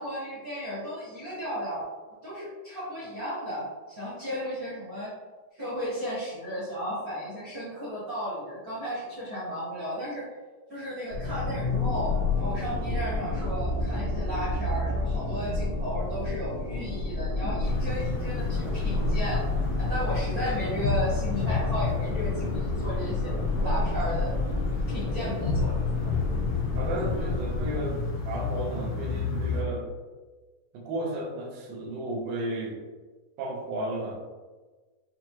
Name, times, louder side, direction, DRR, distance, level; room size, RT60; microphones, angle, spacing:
voice 1, 0.0-1.8 2.2-5.1 5.6-10.3 10.7-19.5 19.8-23.3 23.6-24.3 24.9-25.7, equal, 50° right, -11 dB, 1.0 m, -34 dB
sound 1, 11.1-27.7, left 3 dB, 45° left, 1.3 m, -29 dB
sound 2, 17.6-29.6, left 4 dB, 85° left, 1.4 m, -34 dB
voice 2, 26.7-29.9 30.7-32.8 33.4-34.2, right 1 dB, 80° right, 0 dB, 2.2 m, -33 dB
6.0 x 2.0 x 2.9 m, 1.3 s
omnidirectional pair, 3.8 m